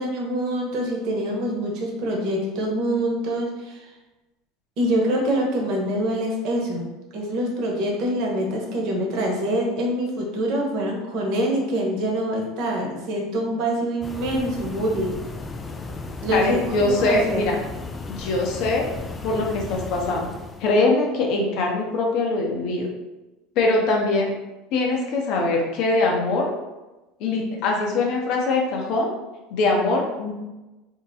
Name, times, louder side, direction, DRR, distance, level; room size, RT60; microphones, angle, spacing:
voice 1, 0.0-3.8 4.8-15.2 16.2-17.4, equal, 60° right, -1 dB, 1.0 m, -25 dB
sound 1, 14.0-20.8, left 3 dB, 20° left, 0.3 m, -35 dB
voice 2, 16.3-17.6 18.1-18.9 19.2-20.3 20.6-22.9 23.6-24.3 24.7-26.5 27.2-29.1 29.5-30.3, left 2 dB, 60° left, 0 dB, 0.8 m, -22 dB
2.8 x 2.2 x 4.0 m, 1.1 s
supercardioid pair, 100°, 0 cm